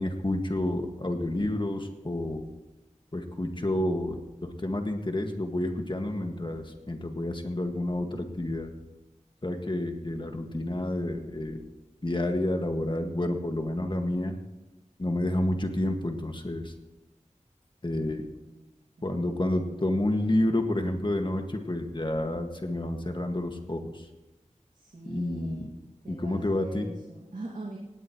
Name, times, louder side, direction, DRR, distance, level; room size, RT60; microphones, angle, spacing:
voice 1, 0.0-2.5 3.1-8.7 9.4-11.6 12.0-14.4 15.0-16.7 17.8-18.3 19.0-24.1 25.1-25.7 26.1-26.9, left 1 dB, 40° left, 4 dB, 1.9 m, -29 dB
voice 2, 18.5-19.2 19.6-19.9 24.7-25.8 26.0-27.8, right 2 dB, 85° right, -3 dB, 2.3 m, -43 dB
18.5 x 17.5 x 3.2 m, 1.0 s
wide cardioid pair, 45°, 13 cm